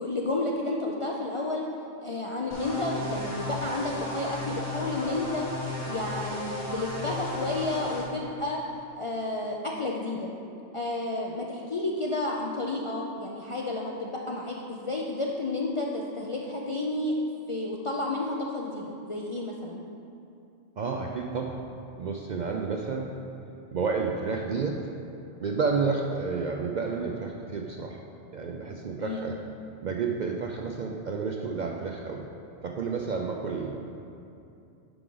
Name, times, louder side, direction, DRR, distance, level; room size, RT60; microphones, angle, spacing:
voice 1, 0.0-1.6 2.0-5.5 5.9-8.6 8.9-10.3 10.7-17.1 17.5-19.8 29.0-29.3, left 2 dB, 50° left, -2 dB, 0.4 m, -31 dB
sound 1, 2.5-8.0, left 2 dB, 25° left, 2.0 m, -35 dB
voice 2, 20.8-21.6 22.0-23.1 23.7-24.8 25.4-28.0 28.3-29.4 29.8-32.3 32.6-33.9, right 4 dB, 60° right, 1 dB, 0.5 m, -30 dB
9.8 x 4.9 x 3.8 m, 2.7 s
omnidirectional pair, 1.2 m